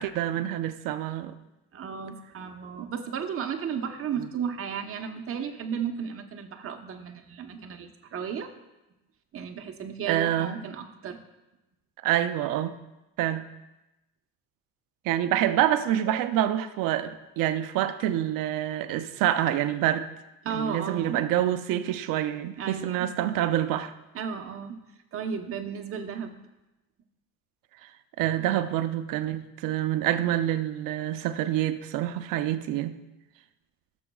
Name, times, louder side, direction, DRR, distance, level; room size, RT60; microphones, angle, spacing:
voice 1, 0.0-1.4 4.2-4.3 10.1-10.5 12.0-12.7 13.2-13.5 15.0-20.1 20.4-23.9 27.8-27.9 28.2-33.0, right 12 dB, 70° right, 0.6 m, -27 dB
voice 2, 1.7-8.5 9.3-11.2 20.4-21.2 22.6-23.1 24.1-24.8 25.1-26.3, right 7 dB, 40° right, 1.0 m, -34 dB
15.0 x 7.1 x 2.3 m
cardioid pair, 120°, 35 cm